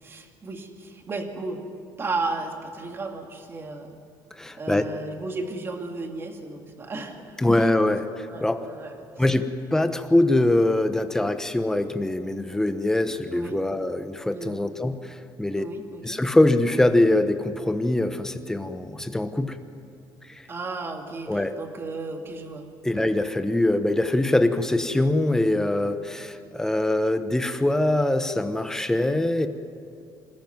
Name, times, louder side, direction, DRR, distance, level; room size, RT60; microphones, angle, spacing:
voice 1, 0.0-1.6 2.0-4.0 4.6-7.2 7.6-7.7 8.3-9.0 13.3-13.6 14.3-14.6 15.5-16.2 20.5-22.6 22.9-23.1, right 3 dB, 30° right, 4 dB, 2.2 m, -34 dB
voice 2, 4.4-4.9 7.4-8.6 9.2-9.4 9.7-15.6 16.0-19.6 20.3-20.5 21.3-21.5 22.8-29.5, left 1 dB, 5° left, 8 dB, 1.0 m, -23 dB
26.0 x 14.0 x 9.4 m, 2.4 s
cardioid pair, 145°, 9 cm